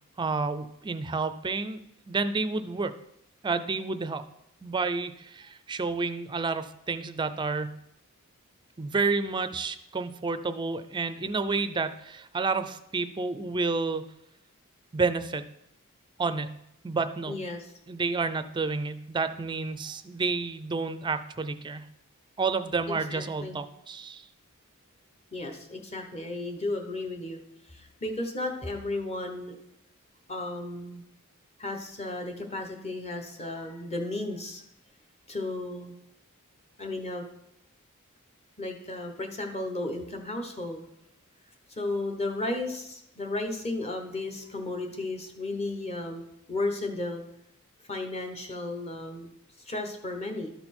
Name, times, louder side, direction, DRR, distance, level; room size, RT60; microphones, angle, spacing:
voice 1, 0.2-1.8 2.1-2.9 3.4-4.2 4.6-7.8 8.8-14.0 14.9-15.5 16.2-16.6 16.8-17.3 17.9-21.9 22.4-24.2, right 4 dB, 20° right, 11 dB, 0.4 m, -30 dB
voice 2, 17.3-17.6 22.9-23.6 25.3-27.4 27.7-29.5 30.3-31.0 31.6-34.6 35.3-35.9 36.8-37.2 38.6-40.8 41.8-46.2 46.5-47.2 47.9-49.3 49.7-50.5, left 2 dB, 30° left, 4 dB, 1.1 m, -34 dB
12.5 x 4.3 x 4.3 m, 0.80 s
head